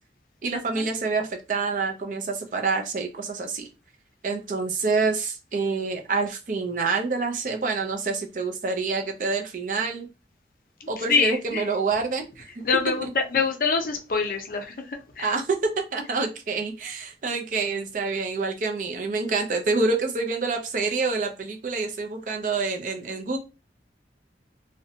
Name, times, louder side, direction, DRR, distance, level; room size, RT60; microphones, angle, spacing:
voice 1, 0.4-3.7 4.2-10.1 10.9-12.5 13.0-13.1 15.2-23.4, right 4 dB, 45° right, 3 dB, 0.4 m, -27 dB
voice 2, 10.8-11.6 12.6-14.7 15.2-15.3, left 5 dB, 50° left, 4 dB, 0.4 m, -25 dB
2.5 x 2.1 x 2.7 m, 0.29 s
head